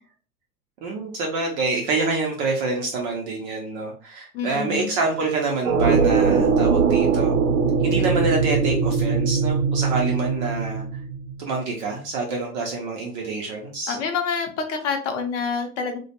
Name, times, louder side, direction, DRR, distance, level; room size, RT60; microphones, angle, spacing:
voice 1, 0.8-7.3 7.8-10.8 11.4-14.0, right 3 dB, 30° right, 0 dB, 0.4 m, -26 dB
voice 2, 4.3-5.0 13.9-16.0, left 5 dB, 50° left, 5 dB, 0.7 m, -27 dB
sound 1, 5.7-11.5, right 5 dB, 75° right, 0.7 m, -21 dB
2.1 x 2.1 x 2.8 m, 0.41 s
hypercardioid pair, 110°, 48 cm